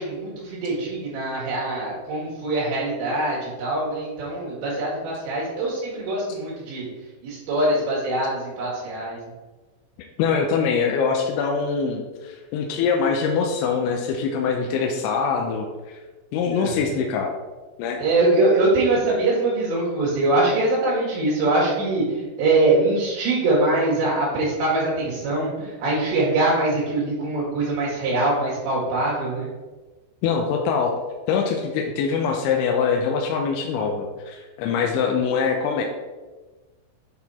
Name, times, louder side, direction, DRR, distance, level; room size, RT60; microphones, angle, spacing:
voice 1, 0.0-6.9 7.2-9.2 16.5-16.7 18.0-29.5, right 2 dB, 65° right, -5 dB, 3.8 m, -23 dB
voice 2, 10.2-15.7 16.3-17.3 17.8-18.0 30.2-31.0 31.3-35.8, left 5 dB, 80° left, 2 dB, 2.7 m, -23 dB
8.9 x 4.1 x 4.2 m, 1.2 s
omnidirectional pair, 5.9 m